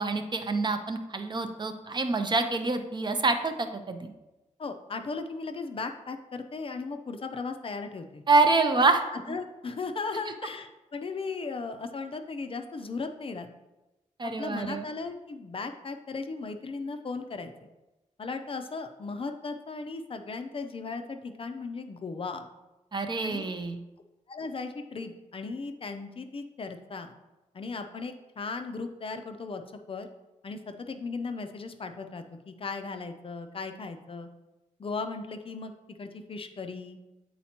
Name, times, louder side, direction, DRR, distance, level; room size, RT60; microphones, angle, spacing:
voice 1, 0.0-4.1 8.3-9.0 9.3-9.4 14.2-14.9 22.9-23.8, right 3 dB, 35° right, 7 dB, 0.5 m, -26 dB
voice 2, 4.6-8.2 8.8-13.5 14.2-17.5 18.2-22.5 23.2-23.5 24.3-27.1 27.5-30.1 30.4-34.3 34.8-37.0, left 4 dB, 45° left, 6 dB, 0.5 m, -37 dB
8.5 x 4.2 x 2.9 m, 1.0 s
wide cardioid pair, 125°, 13 cm